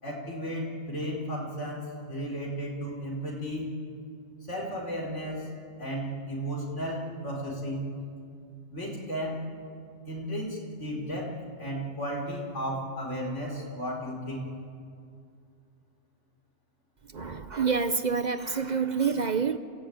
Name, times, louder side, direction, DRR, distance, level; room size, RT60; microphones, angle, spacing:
voice 1, 0.0-3.7 4.5-5.5 5.8-7.9 8.7-9.4 10.1-14.5, equal, 85° left, 4.6 m, -34 dB
voice 2, 17.1-19.6, right 5 dB, 45° right, 0.8 m, -27 dB
27.5 x 16.0 x 9.3 m
omnidirectional pair, 1.2 m